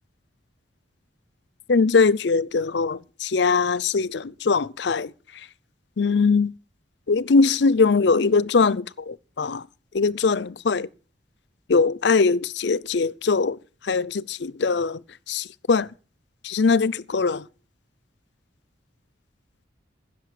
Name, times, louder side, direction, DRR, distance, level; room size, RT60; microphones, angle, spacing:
voice 1, 1.7-5.1 6.0-6.5 7.1-9.6 9.9-10.9 11.7-13.6 13.8-15.0 15.3-15.9 16.4-17.4, left 4 dB, 65° left, 0.5 m, -21 dB
15.5 x 6.5 x 8.3 m
head